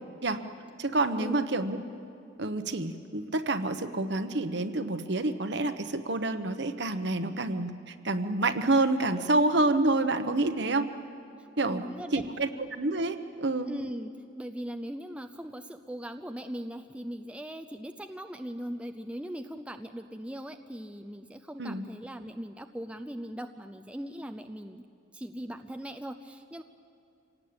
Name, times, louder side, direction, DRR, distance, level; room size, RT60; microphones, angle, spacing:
voice 1, 0.8-1.8 2.4-10.9 11.6-11.8 12.1-13.7 21.6-21.8, right 2 dB, 60° right, 9 dB, 1.1 m, -28 dB
voice 2, 11.4-12.2 13.7-24.8 25.1-26.6, equal, 5° right, 6 dB, 0.5 m, -40 dB
26.0 x 18.0 x 8.8 m, 2.5 s
head